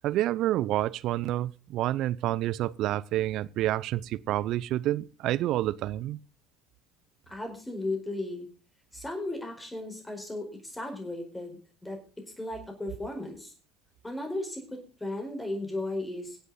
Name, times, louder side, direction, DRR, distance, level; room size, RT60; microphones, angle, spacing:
voice 1, 0.0-6.2, right 14 dB, 55° right, 0.7 m, -28 dB
voice 2, 7.3-8.5 8.9-12.0 12.4-13.5 14.0-16.4, left 2 dB, 10° left, 4.6 m, -35 dB
23.5 x 8.3 x 4.0 m
hypercardioid pair, 70°, 0 cm